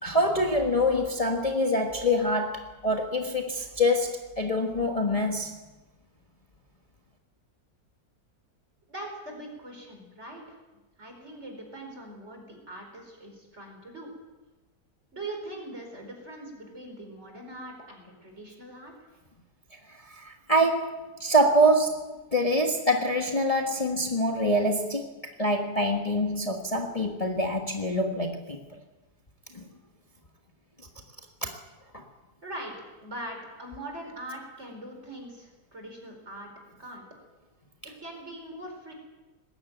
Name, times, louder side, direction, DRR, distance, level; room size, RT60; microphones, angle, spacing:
voice 1, 0.0-5.6 20.1-28.6 29.5-29.7 31.4-31.6 31.9-32.0, equal, 25° left, 2 dB, 1.6 m, -25 dB
voice 2, 8.9-10.6 11.0-14.1 15.1-18.9 32.4-32.7 33.0-36.5 36.8-37.0 37.8-38.9, right 1 dB, 45° right, 2 dB, 4.9 m, -41 dB
20.0 x 15.0 x 9.2 m, 1.1 s
omnidirectional pair, 1.6 m